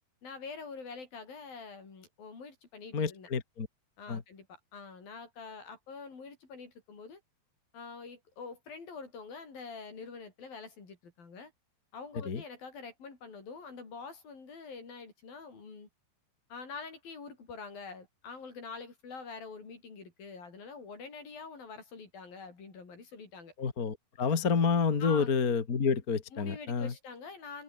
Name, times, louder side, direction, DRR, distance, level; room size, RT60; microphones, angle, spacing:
voice 1, 0.2-3.3 4.0-7.2 7.7-11.5 11.9-15.9 16.5-23.5 25.0-25.3 26.3-27.6, left 4 dB, 60° left, 7.8 m, -45 dB
voice 2, 2.9-3.7 4.1-4.2 12.2-12.4 23.6-26.9, left 5 dB, 35° left, 1.5 m, -29 dB
omnidirectional pair, 4.8 m